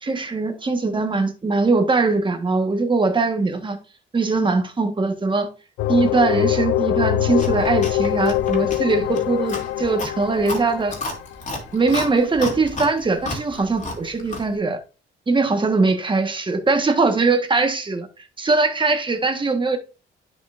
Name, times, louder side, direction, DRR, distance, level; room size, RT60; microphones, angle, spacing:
voice 1, 0.0-3.8 4.1-5.5 5.9-10.9 11.7-14.8 15.3-18.0 18.4-19.8, right 3 dB, 25° right, 1.5 m, -21 dB
sound 1, 5.8-11.5, left 13 dB, 90° left, 0.5 m, -23 dB
Chewing mastication, 7.3-14.6, left 2 dB, 35° left, 2.9 m, -33 dB
9.9 x 5.6 x 2.6 m
cardioid pair, 90°, 20 cm